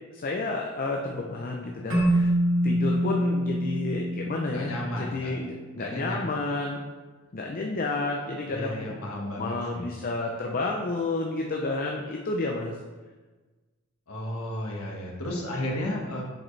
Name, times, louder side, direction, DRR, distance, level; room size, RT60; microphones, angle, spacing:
voice 1, 0.1-2.3 2.6-6.8 7.3-9.0 9.4-12.8, left 2 dB, 40° left, 0 dB, 0.5 m, -30 dB
Keyboard (musical), 1.9-5.1, equal, 60° right, 2.1 m, -25 dB
voice 2, 4.5-5.3 5.7-6.2 8.5-9.8 14.1-16.2, left 1 dB, 90° left, -2 dB, 1.5 m, -33 dB
7.4 x 4.9 x 3.2 m, 1.3 s
head